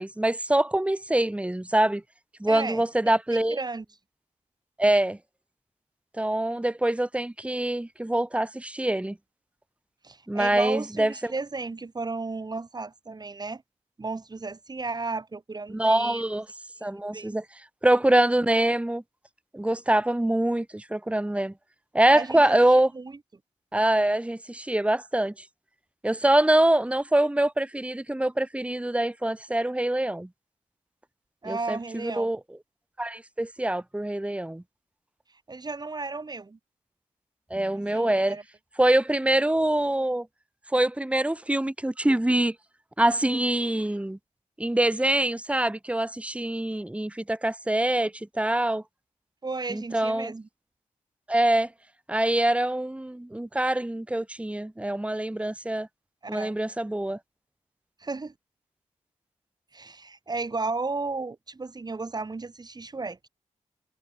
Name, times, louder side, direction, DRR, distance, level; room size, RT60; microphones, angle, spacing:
voice 1, 0.0-2.0 2.4-3.6 4.8-5.2 6.2-9.2 10.3-11.3 15.7-16.5 16.8-17.4 17.8-19.0 19.5-21.5 21.9-22.9 23.7-25.3 26.0-30.3 31.5-32.4 33.0-34.6 37.5-38.4 38.8-40.3 40.7-42.5 43.0-44.2 44.6-48.8 49.7-50.3 51.3-51.7 52.1-55.9 56.3-57.2, right 1 dB, 10° right, 2.6 m, -24 dB
voice 2, 2.5-2.8 3.3-3.8 10.0-13.6 14.0-16.2 17.1-17.4 22.1-22.6 22.9-23.2 31.4-32.3 35.5-36.6 37.7-38.4 49.4-50.5 56.2-56.5 58.0-58.3 59.7-63.3, right 3 dB, 35° right, 2.8 m, -34 dB
cardioid pair, 85°, 12 cm